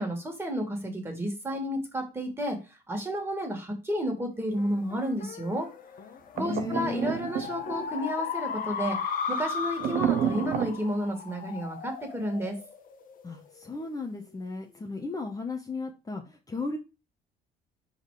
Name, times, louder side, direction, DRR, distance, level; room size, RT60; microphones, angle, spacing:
voice 1, 0.0-2.6 2.9-5.7 6.4-9.0 9.3-12.6, equal, 15° right, 3 dB, 2.4 m, -31 dB
sound 1, 4.6-13.4, left 6 dB, 55° left, 1.2 m, -36 dB
voice 2, 6.4-7.2 13.2-16.8, left 3 dB, 20° left, 2 dB, 1.1 m, -35 dB
sound 2, 6.4-7.8 9.8-10.8, right 9 dB, 65° right, 0.9 m, -29 dB
5.0 x 4.2 x 4.9 m, 0.28 s
cardioid pair, 110°, 17 cm